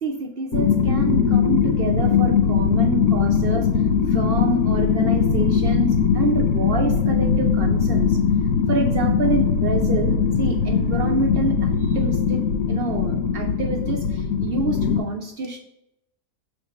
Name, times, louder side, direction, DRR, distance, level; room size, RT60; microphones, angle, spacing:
voice 1, 0.0-3.7 4.1-8.2 8.7-12.4 12.7-15.6, right 3 dB, 75° right, 4 dB, 0.5 m, -27 dB
sound 1, 0.5-15.0, left 6 dB, 65° left, 1.1 m, -20 dB
6.6 x 3.6 x 5.1 m, 0.81 s
omnidirectional pair, 1.7 m